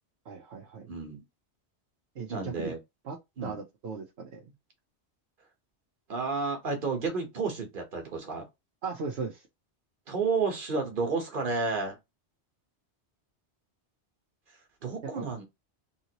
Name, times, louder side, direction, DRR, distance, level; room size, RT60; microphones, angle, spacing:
voice 1, 0.3-0.9 2.1-2.7 3.0-4.5 8.8-9.5 15.1-15.2, right 5 dB, 65° right, 1.0 m, -38 dB
voice 2, 0.9-1.2 2.3-2.8 3.4-3.6 6.1-8.4 10.1-12.0 14.8-15.4, right 4 dB, 50° right, 1.3 m, -31 dB
3.7 x 2.8 x 2.9 m
omnidirectional pair, 1.2 m